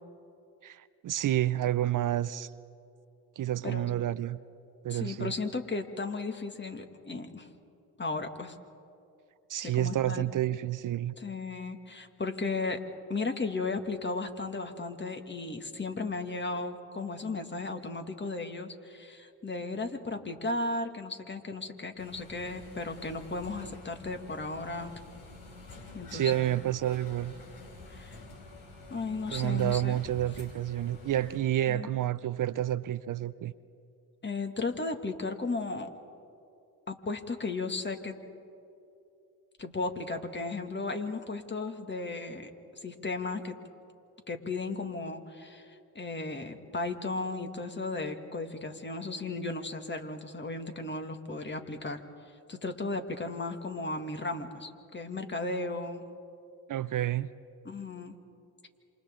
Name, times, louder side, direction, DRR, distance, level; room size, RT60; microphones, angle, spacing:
voice 1, 0.6-2.5 3.4-4.4 4.8-5.3 9.5-11.1 26.1-27.3 29.3-33.5 56.7-57.3, right 13 dB, 50° right, 15 dB, 0.6 m, -29 dB
voice 2, 4.9-7.5 8.0-8.6 9.6-10.2 11.2-12.8 13.1-24.9 25.9-26.5 27.9-28.2 28.9-30.0 31.7-31.9 34.2-35.9 36.9-38.2 39.6-42.5 42.8-43.5 44.3-52.0 52.5-56.0 57.6-58.2, left 3 dB, 25° left, 5 dB, 2.2 m, -35 dB
sound 1, 22.0-31.4, left 2 dB, 60° left, 4.1 m, -48 dB
28.0 x 27.0 x 3.8 m, 2.6 s
supercardioid pair, 60°, 40 cm